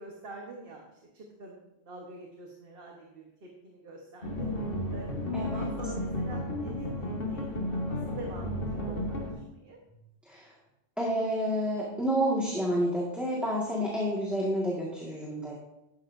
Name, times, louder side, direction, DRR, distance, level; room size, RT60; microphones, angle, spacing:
voice 1, 0.0-4.5 4.9-9.8, right 2 dB, 60° right, 0 dB, 1.4 m, -46 dB
sound 1, 4.2-9.3, left 1 dB, 60° left, 1.8 m, -33 dB
voice 2, 5.3-5.6 10.3-10.5 11.0-15.6, equal, ahead, -5 dB, 1.7 m, -29 dB
12.0 x 10.0 x 2.6 m, 0.90 s
omnidirectional pair, 1.1 m